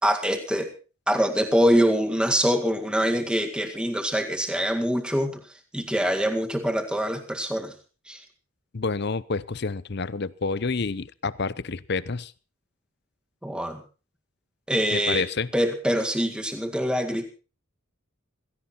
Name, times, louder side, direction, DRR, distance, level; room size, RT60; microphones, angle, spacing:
voice 1, 0.0-0.7 1.1-5.4 5.7-7.7 8.1-8.2 13.4-13.8 14.7-15.3 15.5-17.3, equal, 5° right, 1.9 m, -24 dB
voice 2, 8.7-12.3 14.9-15.5, left 4 dB, 50° left, 0.7 m, -28 dB
16.5 x 16.0 x 4.3 m
head